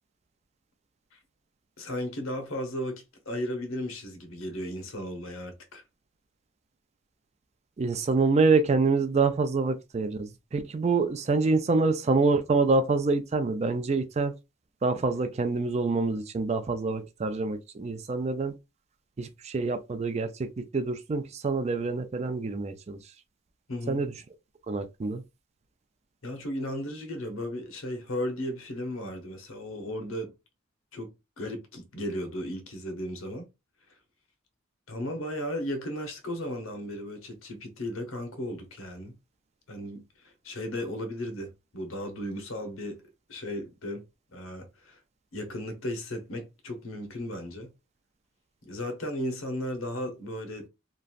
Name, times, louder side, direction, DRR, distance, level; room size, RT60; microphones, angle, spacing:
voice 1, 1.8-5.8 23.7-24.0 26.2-30.3 30.9-33.5 34.9-39.2 39.7-43.0 43.3-44.0 44.3-45.0 45.3-47.7 48.6-50.7, left 1 dB, 85° left, 0.9 m, -35 dB
voice 2, 7.8-14.3 14.8-18.5 19.2-20.5 20.7-23.0 23.9-24.1 24.7-25.2, right 3 dB, 30° right, 0.4 m, -26 dB
3.0 x 2.4 x 2.4 m
head